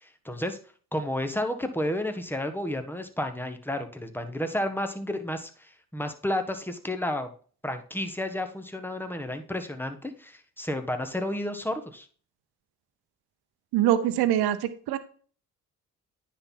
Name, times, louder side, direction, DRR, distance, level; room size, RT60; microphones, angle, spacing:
voice 1, 0.0-0.6 0.9-7.3 7.6-12.1, left 1 dB, 5° left, 7 dB, 1.4 m, -31 dB
voice 2, 13.7-15.0, right 12 dB, 85° right, 12 dB, 0.8 m, -24 dB
9.7 x 4.3 x 3.9 m, 0.42 s
supercardioid pair, 50°, 37 cm